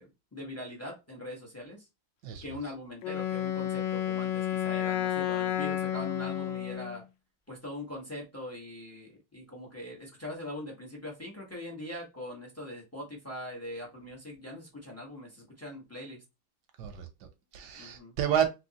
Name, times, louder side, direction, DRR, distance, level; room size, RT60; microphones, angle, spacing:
voice 1, 0.0-1.8 2.4-7.0 7.5-16.2 17.8-18.1, left 1 dB, 25° left, 0.3 m, -42 dB
Wind instrument woodwind instrument, 3.0-7.0, left 11 dB, 75° left, 1.1 m, -31 dB
voice 2, 16.8-18.5, right 9 dB, 70° right, 1.0 m, -31 dB
3.4 x 3.0 x 2.8 m
omnidirectional pair, 2.3 m